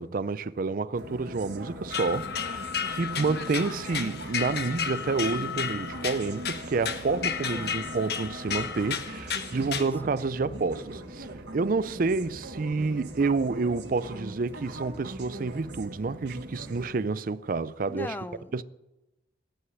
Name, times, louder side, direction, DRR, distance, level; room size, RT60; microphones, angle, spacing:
voice 1, 0.0-11.3 11.5-18.1 18.5-18.6, right 4 dB, 50° right, 0.5 m, -29 dB
sound 1, 1.0-16.9, right 1 dB, 75° right, 1.7 m, -41 dB
sound 2, 1.9-9.8, left 7 dB, 65° left, 1.3 m, -33 dB
voice 2, 17.9-18.6, left 1 dB, 10° left, 0.6 m, -39 dB
18.0 x 6.5 x 9.2 m
head